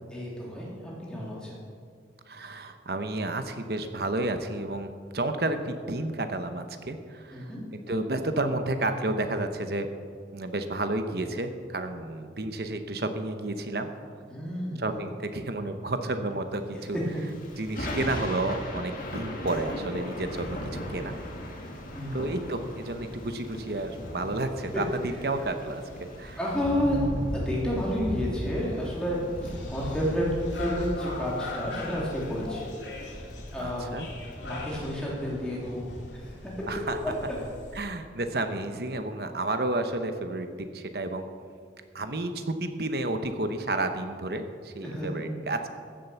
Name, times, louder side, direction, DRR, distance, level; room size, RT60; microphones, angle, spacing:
voice 1, 0.1-1.6 7.3-7.6 14.3-14.8 16.9-17.0 21.9-22.3 26.4-27.0 27.3-32.7 33.5-33.9 34.4-36.5 44.8-45.1, equal, 5° left, -6 dB, 3.3 m, -31 dB
voice 2, 2.3-9.9 10.3-13.9 14.8-17.0 17.6-21.1 22.1-26.4 33.6-34.1 36.7-37.0 37.7-41.3 41.9-45.7, right 2 dB, 55° right, 7 dB, 0.9 m, -31 dB
Thunder / Rain, 16.9-34.4, equal, 45° left, 2.2 m, -37 dB
sound 1, 29.4-37.8, left 1 dB, 75° left, 2.4 m, -40 dB
15.0 x 7.7 x 7.0 m, 2.1 s
head